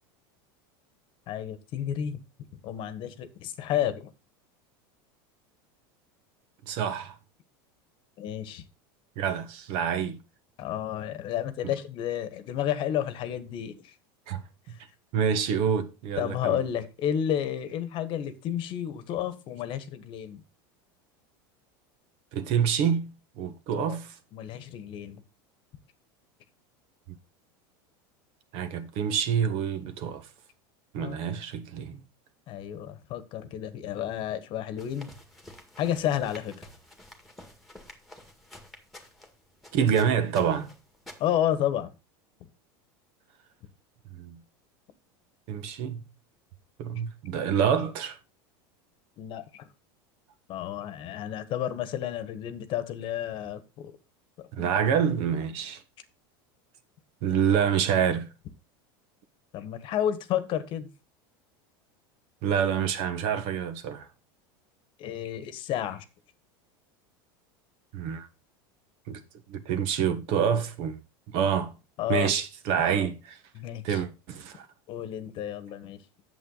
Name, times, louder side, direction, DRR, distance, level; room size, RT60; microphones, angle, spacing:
voice 1, 1.3-2.2 2.6-4.1 8.2-8.6 10.6-13.9 14.7-14.8 16.2-20.4 23.7-24.0 24.3-25.2 31.0-31.2 32.5-35.1 35.8-36.7 41.2-41.9 49.2-49.7 50.5-53.9 54.4-54.7 59.5-60.9 65.0-66.0 72.0-72.3 73.5-74.0 74.9-76.0, left 10 dB, 45° left, 1.2 m, -31 dB
voice 2, 6.7-7.2 9.2-10.2 11.6-11.7 14.3-14.4 15.1-16.6 22.3-23.1 23.4-24.1 28.5-30.3 30.9-32.0 39.7-40.7 44.1-44.4 45.5-46.1 46.8-48.2 54.5-55.8 57.2-58.3 62.4-64.1 67.9-68.3 69.1-69.2 69.5-71.0 71.3-71.7 72.1-73.4 73.8-74.7, right 8 dB, 55° right, 1.3 m, -27 dB
sound 1, 34.8-41.5, left 1 dB, ahead, 1.8 m, -50 dB
8.5 x 7.2 x 3.9 m
supercardioid pair, 135°, 12 cm